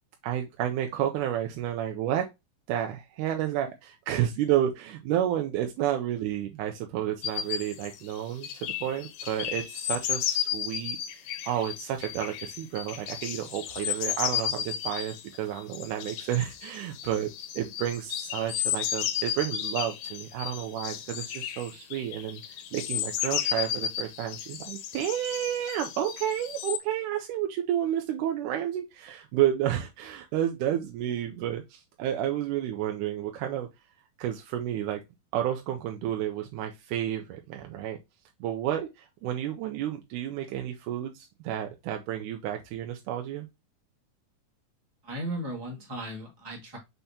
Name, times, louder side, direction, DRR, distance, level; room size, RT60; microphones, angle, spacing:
voice 1, 0.2-2.3 2.7-8.5 8.8-11.0 11.4-33.7 34.2-35.0 35.3-38.0 38.4-43.5, right 11 dB, 80° right, 2.1 m, -31 dB
sound 1, 7.2-26.8, left 10 dB, 80° left, 2.1 m, -33 dB
voice 2, 45.0-46.8, right 1 dB, 25° right, 0.5 m, -36 dB
5.7 x 3.4 x 2.7 m
omnidirectional pair, 3.6 m